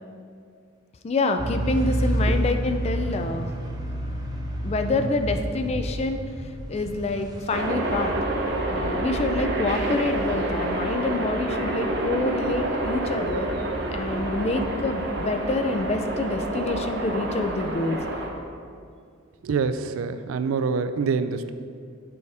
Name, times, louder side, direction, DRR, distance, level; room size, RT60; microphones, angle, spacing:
voice 1, 1.0-3.5 4.6-6.2 6.7-8.1 8.7-13.5 13.9-18.0, left 2 dB, 30° left, 7 dB, 0.3 m, -27 dB
sound 1, 1.4-9.2, right 1 dB, 20° right, 0.5 m, -29 dB
sound 2, 7.5-18.3, right 2 dB, 55° right, 0.7 m, -28 dB
voice 2, 19.4-21.5, right 5 dB, 90° right, 11 dB, 0.3 m, -25 dB
6.9 x 3.4 x 4.8 m, 2.2 s
head